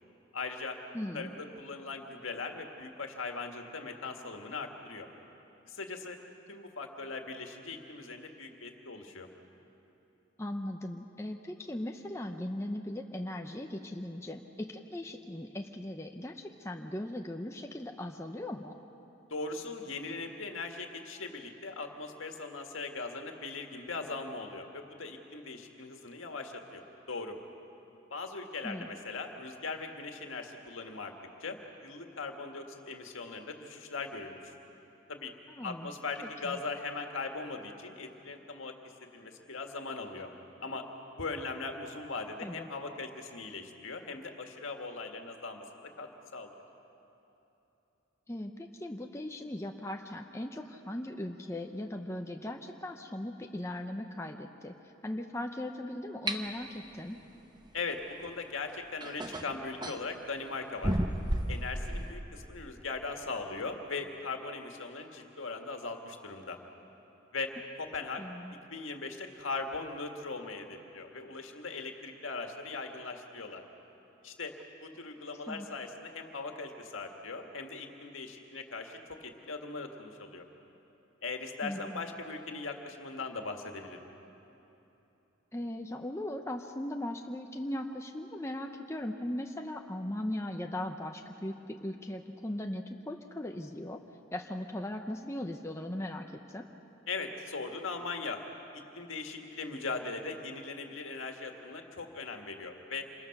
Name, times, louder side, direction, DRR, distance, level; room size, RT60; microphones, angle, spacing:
voice 1, 0.3-0.8 1.1-5.1 5.7-6.2 6.5-9.3 19.3-27.4 28.1-31.1 31.4-34.5 35.1-35.3 35.6-38.7 39.1-40.3 40.6-40.9 41.2-46.5 57.7-61.0 61.5-66.6 67.3-67.5 67.8-68.2 68.7-73.6 74.2-80.4 81.2-84.1 97.1-98.4 98.7-103.1, left 3 dB, 75° left, 4 dB, 1.8 m, -39 dB
voice 2, 0.9-1.3 10.4-18.7 28.6-28.9 35.5-35.9 36.4-36.6 42.4-42.7 48.3-54.7 55.0-57.2 68.2-68.5 75.5-75.7 81.6-82.0 85.5-94.0 94.3-96.7, left 1 dB, 15° left, 3 dB, 0.7 m, -38 dB
sound 1, 56.3-56.4 58.3-58.4 59.0-60.0 60.8-62.1, right 1 dB, 20° right, 0.9 m, -32 dB
27.0 x 21.0 x 6.0 m, 3.0 s
head